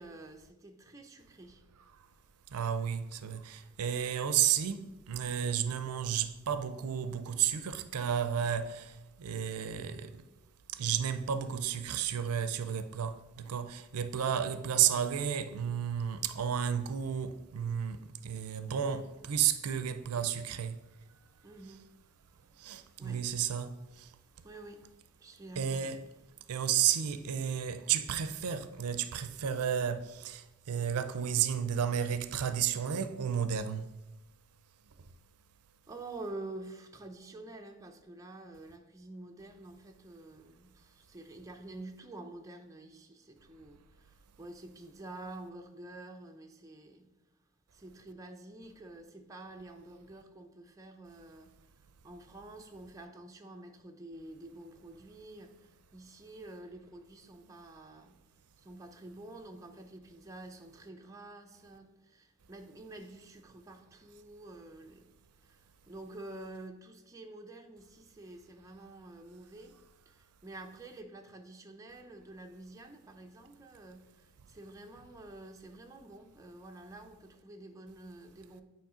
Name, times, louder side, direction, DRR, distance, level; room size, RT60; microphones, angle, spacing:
voice 1, 0.0-1.6 21.4-22.5 23.0-23.3 24.1-26.0 35.9-47.1 47.7-51.5 52.0-58.2 58.6-69.8 70.1-78.6, right 2 dB, 15° right, 0.5 m, -49 dB
voice 2, 2.5-4.8 5.1-8.8 9.2-10.1 10.8-18.0 18.2-20.8 22.6-23.8 25.6-26.0 26.5-30.4 30.7-33.8, right 9 dB, 85° right, 0.5 m, -32 dB
8.8 x 3.1 x 4.9 m
head